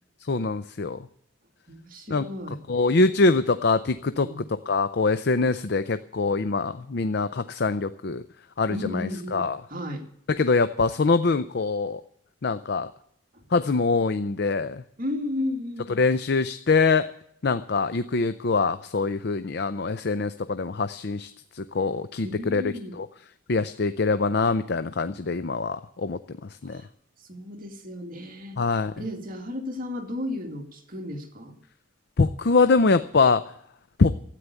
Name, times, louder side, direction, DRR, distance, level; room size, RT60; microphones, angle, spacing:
voice 1, 0.2-1.0 2.1-2.2 2.7-4.3 4.7-8.2 8.6-9.6 10.4-12.0 12.4-12.9 13.5-14.8 16.0-17.1 17.4-21.3 21.5-23.1 23.5-26.2 26.6-26.8 28.6-28.9 32.2-33.4 34.0-34.1, left 3 dB, 50° left, 12 dB, 0.5 m, -24 dB
voice 2, 1.7-2.6 4.2-4.4 8.7-10.0 13.3-13.4 15.0-16.0 22.2-23.0 26.6-26.9 27.2-31.5, left 1 dB, 40° right, 3 dB, 2.2 m, -34 dB
13.0 x 9.3 x 8.2 m, 0.69 s
head